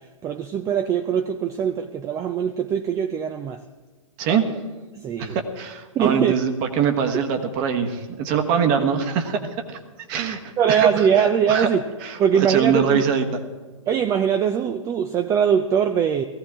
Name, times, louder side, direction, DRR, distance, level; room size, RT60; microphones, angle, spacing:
voice 1, 0.2-3.6 4.9-5.4 6.0-6.3 10.6-11.8 12.2-13.0 13.9-16.2, right 8 dB, 20° right, 8 dB, 0.4 m, -21 dB
voice 2, 5.2-9.4 9.7-9.8 10.1-10.9 11.1-11.2 11.5-11.7 12.0-13.4, right 7 dB, 35° right, 5 dB, 1.5 m, -23 dB
18.0 x 15.0 x 3.7 m, 1.3 s
figure-of-eight pair, 115°, 17 cm